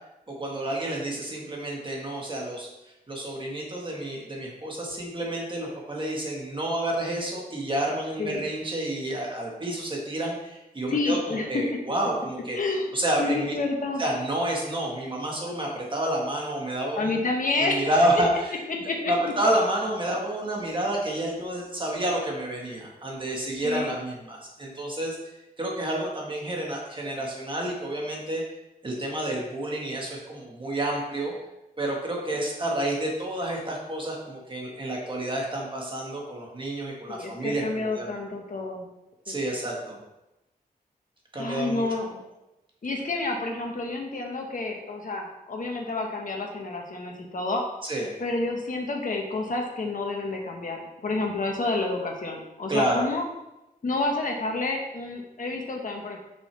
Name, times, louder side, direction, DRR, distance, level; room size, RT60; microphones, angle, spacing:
voice 1, 0.4-2.7 3.1-12.6 12.9-13.6 14.0-17.1 17.6-25.2 25.6-28.4 28.8-31.3 31.8-38.2 39.2-40.0 41.3-41.9 47.8-48.1 52.7-53.0, right 1 dB, 30° right, -2 dB, 1.6 m, -29 dB
voice 2, 10.9-11.6 12.5-12.9 13.2-14.0 16.9-18.0 18.8-19.3 23.6-23.9 37.1-38.8 39.3-39.4 41.4-42.2 42.8-47.6 48.2-53.2 53.8-56.2, left 3 dB, 55° left, 1 dB, 1.4 m, -29 dB
8.2 x 6.3 x 3.4 m, 0.93 s
wide cardioid pair, 135°, 16 cm